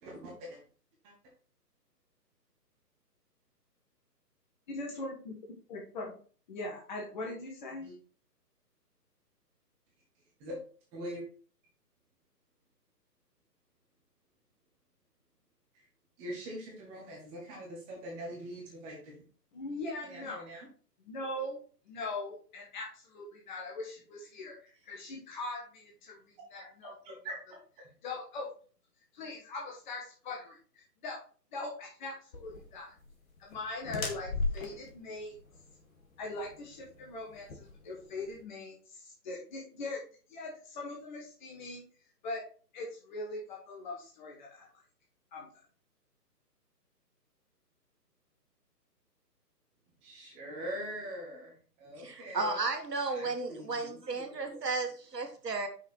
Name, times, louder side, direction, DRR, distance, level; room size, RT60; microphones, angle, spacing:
voice 1, 0.0-0.6 1.0-1.1 7.8-7.9 10.4-10.6 10.9-11.2 16.2-19.1 20.0-20.7 27.0-27.3 50.0-51.5 51.8-52.6 53.1-54.0 54.5-54.7, equal, 10° right, -3 dB, 1.2 m, -42 dB
voice 2, 4.7-6.1 6.5-7.9 19.5-20.5 21.0-21.6 21.9-26.9 28.0-28.5 29.1-31.2 31.5-32.9 33.4-35.4 36.2-40.0 40.3-41.8 42.2-42.4 42.7-44.7 45.3-45.5, left 2 dB, 30° left, -2 dB, 1.4 m, -41 dB
sound 1, 32.3-38.4, left 3 dB, 55° left, 1.9 m, -39 dB
voice 3, 52.0-55.7, right 3 dB, 70° right, 5 dB, 1.5 m, -34 dB
6.0 x 4.7 x 4.6 m, 0.41 s
figure-of-eight pair, 140°, 49 cm